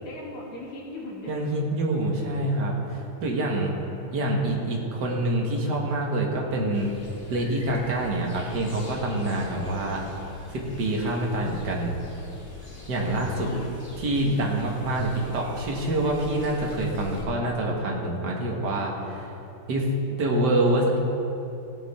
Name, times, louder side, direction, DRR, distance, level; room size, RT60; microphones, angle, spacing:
voice 1, 0.0-1.5 2.2-2.3 13.4-13.8, left 1 dB, 85° left, -4 dB, 3.1 m, -39 dB
voice 2, 1.3-3.7 4.1-6.9 7.3-10.0 10.5-12.0 12.9-13.5 14.0-19.3 19.7-21.0, right 1 dB, 55° right, -1 dB, 2.1 m, -26 dB
sound 1, 6.7-17.2, left 3 dB, 30° left, 1.7 m, -44 dB
16.5 x 8.9 x 4.3 m, 2.9 s
omnidirectional pair, 2.4 m